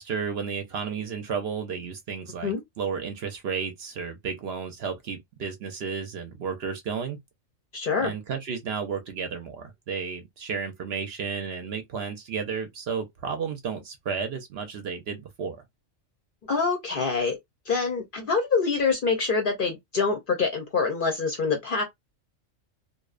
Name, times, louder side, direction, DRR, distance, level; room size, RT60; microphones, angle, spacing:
voice 1, 0.0-7.2 8.0-15.6, right 6 dB, 65° right, 0.7 m, -32 dB
voice 2, 7.7-8.1 16.5-17.4 17.7-21.8, left 4 dB, 55° left, 0.6 m, -25 dB
2.6 x 2.0 x 2.3 m
omnidirectional pair, 1.3 m